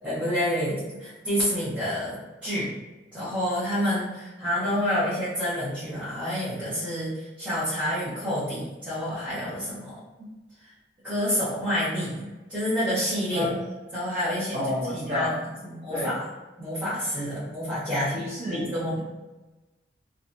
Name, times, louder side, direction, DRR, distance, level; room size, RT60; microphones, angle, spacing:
voice 1, 0.0-2.7 3.1-10.0 11.0-13.5 13.9-14.6 14.9-15.3 15.6-16.3 16.6-19.0, equal, 5° right, -13 dB, 0.8 m, -28 dB
voice 2, 14.5-15.4 15.9-16.2 18.1-18.7, left 1 dB, 35° right, -8 dB, 0.6 m, -30 dB
2.7 x 2.3 x 2.5 m, 1.1 s
head